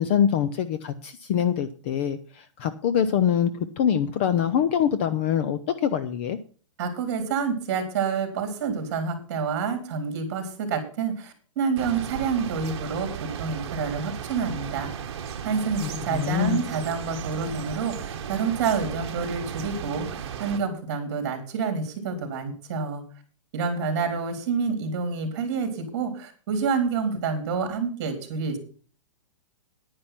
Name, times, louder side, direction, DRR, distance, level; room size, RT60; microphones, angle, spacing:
voice 1, 0.0-2.2 2.6-3.5 3.8-6.4 15.8-16.6, left 9 dB, 20° left, 11 dB, 0.5 m, -24 dB
voice 2, 6.8-15.1 15.4-23.0 23.5-28.6, right 5 dB, 35° right, 5 dB, 3.6 m, -28 dB
sound 1, 11.8-20.6, right 7 dB, 55° right, 1.4 m, -35 dB
10.0 x 9.8 x 5.9 m, 0.41 s
hypercardioid pair, 175°, 16 cm